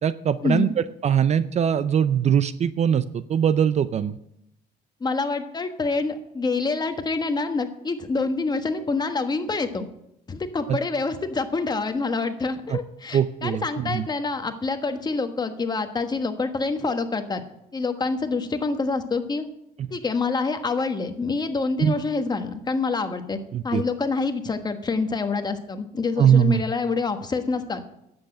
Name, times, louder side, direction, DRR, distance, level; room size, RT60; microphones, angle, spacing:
voice 1, 0.0-4.2 10.7-10.8 12.7-12.8 13.1-14.0 21.8-21.9 23.5-23.8 26.2-26.6, right 8 dB, 40° right, 15 dB, 0.5 m, -21 dB
voice 2, 5.0-9.9 10.3-17.4 17.7-19.4 19.9-23.4 23.6-27.8, left 4 dB, 25° left, 7 dB, 1.3 m, -26 dB
10.5 x 8.0 x 8.7 m, 0.81 s
cardioid pair, 110°, 17 cm